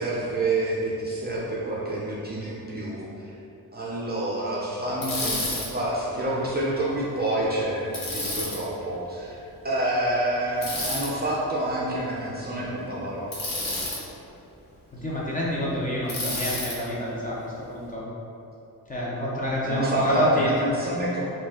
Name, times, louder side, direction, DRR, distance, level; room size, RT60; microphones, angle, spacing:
voice 1, 0.0-3.3 3.7-13.5 19.6-21.2, right 1 dB, 25° right, -6 dB, 0.5 m, -28 dB
Bicycle, 5.0-5.7 7.9-8.6 10.6-11.1 13.3-14.0 16.1-16.8, left 2 dB, 60° left, 1.0 m, -30 dB
voice 2, 14.9-18.0 18.9-20.5, equal, 20° left, -6 dB, 0.6 m, -27 dB
4.3 x 2.5 x 3.6 m, 2.7 s
wide cardioid pair, 155°, 38 cm